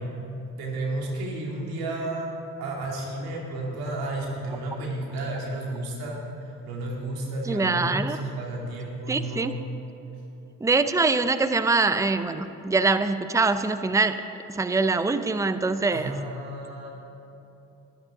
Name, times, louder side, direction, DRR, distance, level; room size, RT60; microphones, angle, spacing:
voice 1, 0.0-6.2 6.7-9.6 15.9-16.9, right 2 dB, 85° right, -2 dB, 2.4 m, -32 dB
voice 2, 7.5-8.2 9.1-9.5 10.6-14.2 14.5-16.1, right 3 dB, 10° right, 11 dB, 0.6 m, -23 dB
21.0 x 10.5 x 3.8 m, 2.9 s
supercardioid pair, 50°, 36 cm